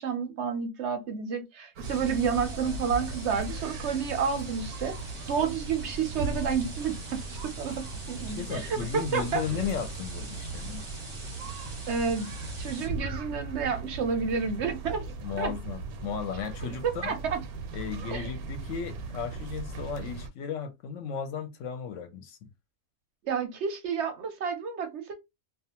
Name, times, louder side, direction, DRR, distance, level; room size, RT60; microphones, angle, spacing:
voice 1, 0.0-5.0 5.3-9.4 11.9-12.3 12.6-15.0 15.4-15.5 16.8-17.4 18.1-18.3 23.2-25.1, right 6 dB, 65° right, 0.7 m, -30 dB
sound 1, 1.8-12.9, right 2 dB, 30° right, 0.6 m, -45 dB
sound 2, 1.8-20.3, right 3 dB, 90° right, 1.1 m, -38 dB
voice 2, 8.2-10.8 15.2-17.1 17.7-22.4, left 7 dB, 65° left, 0.9 m, -35 dB
2.4 x 2.3 x 2.8 m
omnidirectional pair, 1.5 m